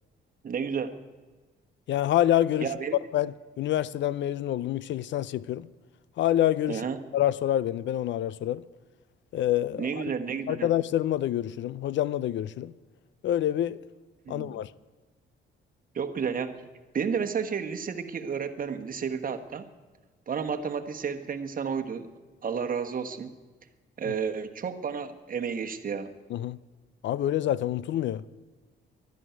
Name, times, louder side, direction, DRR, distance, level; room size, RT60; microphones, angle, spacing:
voice 1, 0.4-0.9 2.6-3.0 6.7-7.0 9.8-10.7 14.3-14.6 15.9-16.5 16.9-19.6 20.3-22.1 22.4-23.3 24.0-26.1, right 6 dB, 45° right, 1.3 m, -31 dB
voice 2, 1.9-2.7 3.1-5.7 6.2-6.8 7.1-8.6 9.3-10.0 10.5-12.7 13.2-13.8 14.3-14.7 24.1-24.2 26.3-26.6 27.0-28.2, left 12 dB, 70° left, 0.5 m, -27 dB
11.5 x 11.0 x 9.2 m
cardioid pair, 90°, 20 cm